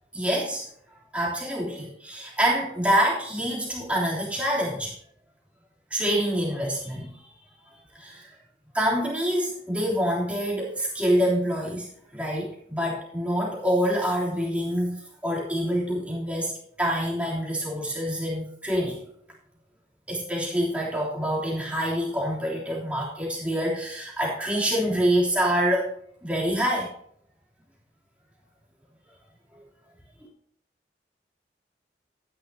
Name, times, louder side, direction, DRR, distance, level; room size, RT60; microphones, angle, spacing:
voice 1, 0.1-0.7 1.1-4.9 5.9-7.1 7.9-8.3 8.7-11.9 12.1-19.0 20.1-25.9 26.2-26.9, equal, 5° right, -5 dB, 3.2 m, -26 dB
13.0 x 10.0 x 2.9 m, 0.63 s
head